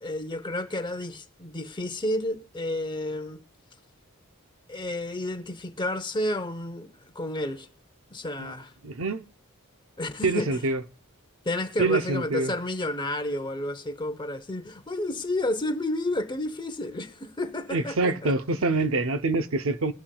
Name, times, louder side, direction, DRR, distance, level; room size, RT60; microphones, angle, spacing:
voice 1, 0.0-3.4 4.7-7.7 8.1-8.7 10.0-10.6 11.4-18.3 18.7-18.8, left 1 dB, 20° left, 0.8 m, -31 dB
voice 2, 8.8-9.2 10.2-10.8 11.8-12.5 17.7-19.9, right 3 dB, 65° right, 0.7 m, -25 dB
21.5 x 8.8 x 2.3 m
head